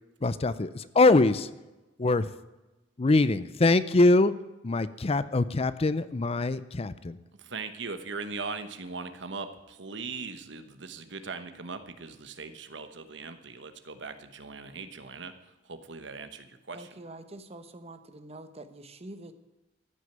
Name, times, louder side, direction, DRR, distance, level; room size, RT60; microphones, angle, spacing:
voice 1, 0.2-1.5 2.0-2.3 3.0-4.4 4.6-7.2, left 2 dB, 30° left, 15 dB, 0.5 m, -23 dB
voice 2, 7.3-15.4 15.6-16.9, right 4 dB, 75° right, 10 dB, 1.2 m, -40 dB
voice 3, 16.7-19.3, right 2 dB, 35° right, 10 dB, 1.0 m, -45 dB
14.5 x 6.5 x 8.9 m, 1.1 s
head